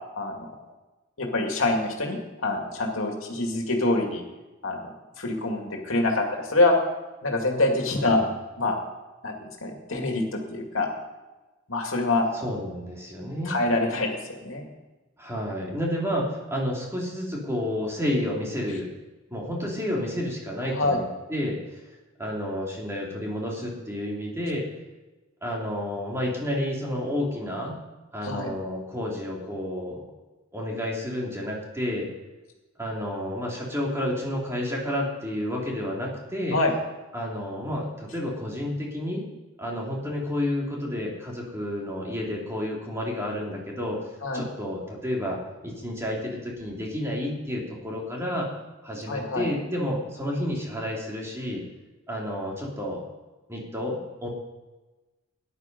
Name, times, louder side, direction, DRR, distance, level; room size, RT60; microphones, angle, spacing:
voice 1, 0.2-0.5 1.2-4.2 4.6-6.8 7.2-8.2 8.6-8.8 9.2-9.4 9.6-10.9 11.7-12.3 13.5-14.6 20.7-21.0 28.2-28.5 36.5-36.7 44.2-44.4 49.1-49.5, left 2 dB, 75° left, 2 dB, 2.3 m, -25 dB
voice 2, 7.9-8.3 12.4-13.5 15.2-18.9 19.3-21.8 22.2-24.7 25.4-27.8 28.1-30.0 30.5-32.1 32.8-36.6 37.1-39.2 39.6-44.0 44.3-48.5 48.8-51.6 52.1-53.0 53.5-54.3, left 1 dB, 15° right, -2 dB, 2.7 m, -30 dB
13.5 x 10.5 x 5.3 m, 1.1 s
head